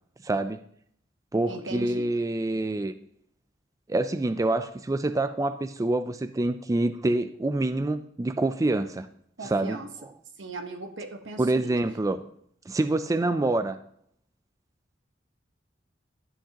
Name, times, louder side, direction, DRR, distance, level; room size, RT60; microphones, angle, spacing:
voice 1, 0.2-0.6 1.3-2.9 3.9-9.1 9.4-10.1 11.4-12.2 12.7-13.8, right 2 dB, 20° right, 10 dB, 0.3 m, -26 dB
voice 2, 1.5-2.1 9.4-9.9 10.4-11.8, right 2 dB, 85° right, 5 dB, 1.2 m, -38 dB
12.5 x 8.0 x 2.9 m, 0.65 s
head